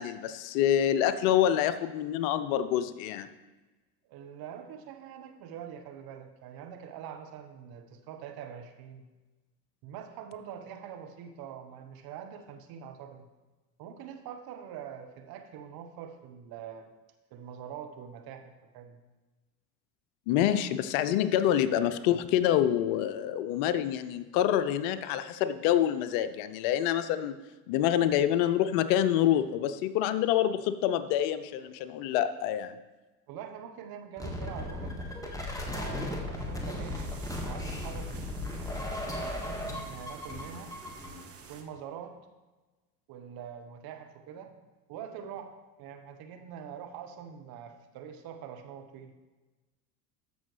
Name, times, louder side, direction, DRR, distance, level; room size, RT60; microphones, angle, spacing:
voice 1, 0.0-3.3 20.3-27.4 27.7-32.8, left 11 dB, 55° left, 12 dB, 0.6 m, -27 dB
voice 2, 4.1-9.1 9.8-13.3 13.8-16.9 17.3-19.0 33.3-35.0 35.6-37.0 37.4-38.4 39.0-40.7 41.5-42.2 43.1-44.5 44.9-45.5 45.8-49.1, right 8 dB, 45° right, 6 dB, 1.2 m, -44 dB
sound 1, 34.2-41.2, left 1 dB, 5° left, 1.6 m, -36 dB
sound 2, 36.3-41.6, right 6 dB, 30° right, 1.1 m, -51 dB
13.5 x 6.1 x 3.2 m, 1.2 s
hypercardioid pair, 80°, 49 cm